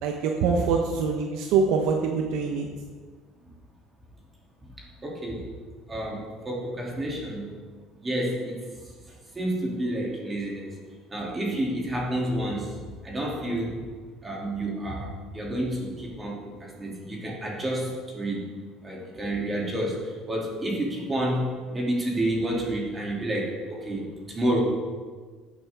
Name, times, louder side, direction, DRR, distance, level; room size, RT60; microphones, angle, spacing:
voice 1, 0.0-2.7, right 5 dB, 75° right, 2 dB, 1.1 m, -24 dB
voice 2, 4.6-5.5 5.9-7.6 8.0-8.7 9.3-10.8 11.1-12.8 13.0-13.8 14.2-18.5 18.8-24.6, right 1 dB, 20° right, -2 dB, 2.8 m, -30 dB
14.5 x 9.1 x 3.6 m, 1.5 s
cardioid pair, 120°, 0 cm